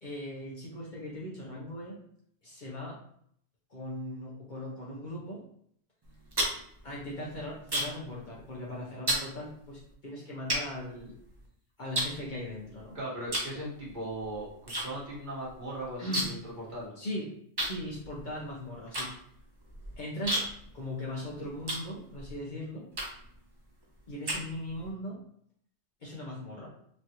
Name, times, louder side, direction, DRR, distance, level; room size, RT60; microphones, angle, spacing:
voice 1, 0.0-2.0 2.4-3.0 3.7-5.4 6.8-11.1 11.8-13.0 16.0-16.3 17.0-17.3 17.6-19.1 20.0-20.5 20.7-22.8 24.1-25.2 26.0-26.7, left 1 dB, 50° left, -5 dB, 0.7 m, -39 dB
sound 1, 6.0-8.1 8.4-8.7 9.1-9.3 9.9-10.0 10.5-11.5 11.9-12.8 13.3-13.6 13.9-14.9 15.1-15.2 15.5-16.5 16.8-16.9 17.6-22.3 22.9-23.3 23.8-24.9, right 1 dB, 30° right, 0.5 m, -33 dB
voice 2, 12.9-16.9, right 1 dB, 45° right, -6 dB, 1.2 m, -38 dB
3.2 x 2.4 x 2.8 m, 0.68 s
omnidirectional pair, 1.2 m